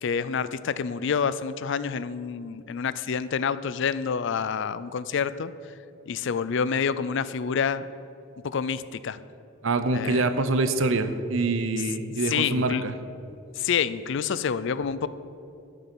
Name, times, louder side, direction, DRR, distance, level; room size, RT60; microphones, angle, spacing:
voice 1, 0.0-5.5 6.1-7.9 8.4-9.2 9.9-10.3 12.3-12.9 13.6-15.1, left 6 dB, 60° left, 15 dB, 0.4 m, -28 dB
voice 2, 9.6-12.9, right 3 dB, 70° right, 10 dB, 0.7 m, -25 dB
13.0 x 6.7 x 6.1 m, 2.7 s
head